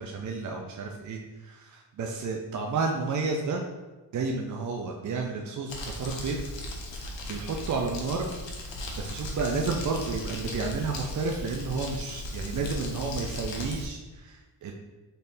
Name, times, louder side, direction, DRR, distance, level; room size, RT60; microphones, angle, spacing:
voice 1, 0.0-3.6 4.1-6.4 6.9-8.3 9.0-14.7, right 4 dB, 45° right, 1 dB, 0.4 m, -31 dB
Crumpling crinkling, 5.7-13.9, left 1 dB, 80° left, 0.9 m, -37 dB
4.3 x 3.4 x 2.6 m, 1.2 s
cardioid pair, 110°, 44 cm